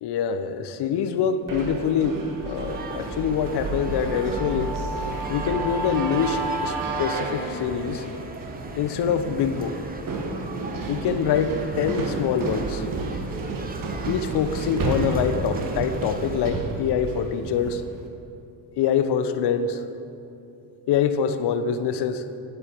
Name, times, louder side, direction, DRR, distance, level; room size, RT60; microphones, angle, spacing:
voice 1, 0.0-4.8 5.3-8.1 8.7-9.8 10.9-12.9 14.0-17.8 18.8-19.8 20.9-22.3, left 7 dB, 55° left, 10 dB, 0.8 m, -25 dB
sound 1, 1.5-18.0, right 3 dB, 45° right, 1.4 m, -32 dB
Guitar, 1.8-7.3, right 3 dB, 85° right, 1.2 m, -33 dB
sound 2, 2.7-16.5, right 2 dB, 20° right, 0.9 m, -38 dB
11.0 x 8.1 x 4.5 m, 2.8 s
supercardioid pair, 70°, 47 cm